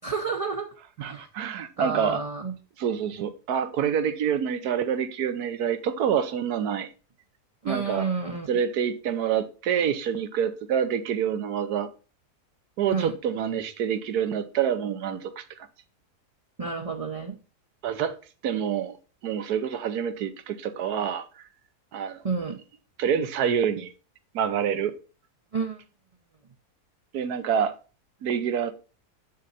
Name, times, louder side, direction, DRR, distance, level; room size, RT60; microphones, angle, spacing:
voice 1, 0.0-0.7 1.0-1.3 1.8-2.5 7.6-8.5 12.9-13.1 16.6-17.4 22.2-22.6 25.5-25.8, right 5 dB, 35° right, 0.5 m, -30 dB
voice 2, 1.0-2.2 2.8-6.9 7.6-8.1 8.5-11.9 12.8-15.7 17.8-18.1 18.4-19.0 19.2-21.3 21.9-22.2 23.0-23.9 24.3-24.9 27.1-27.7 28.2-28.7, right 8 dB, 70° right, 1.3 m, -27 dB
7.5 x 6.4 x 4.1 m
omnidirectional pair, 1.7 m